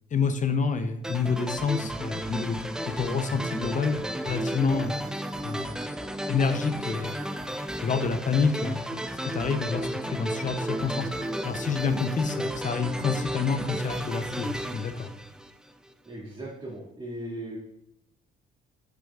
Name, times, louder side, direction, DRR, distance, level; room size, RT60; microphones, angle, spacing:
voice 1, 0.1-5.0 5.4-5.9 6.3-7.2 7.8-15.1, left 5 dB, 40° left, 9 dB, 0.6 m, -28 dB
sound 1, 1.0-15.9, right 1 dB, 5° right, 0.4 m, -33 dB
voice 2, 16.0-17.6, right 1 dB, 25° right, -7 dB, 2.1 m, -38 dB
9.5 x 4.6 x 2.4 m, 0.76 s
cardioid pair, 90°, 20 cm